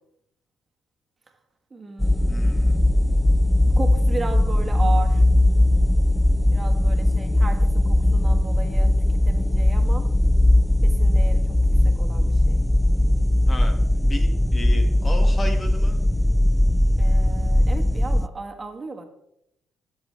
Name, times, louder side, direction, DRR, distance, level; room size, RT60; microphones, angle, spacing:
voice 1, 1.7-2.8 3.6-5.2 6.5-10.1 10.8-11.6 11.8-12.6 17.0-19.0, right 4 dB, 30° right, 3 dB, 1.6 m, -35 dB
sound 1, 2.0-18.3, left 1 dB, 5° left, 0.4 m, -19 dB
voice 2, 2.3-2.8 13.5-16.0, left 2 dB, 35° left, 5 dB, 1.9 m, -35 dB
13.0 x 7.2 x 3.4 m, 0.79 s
supercardioid pair, 60°, 0 cm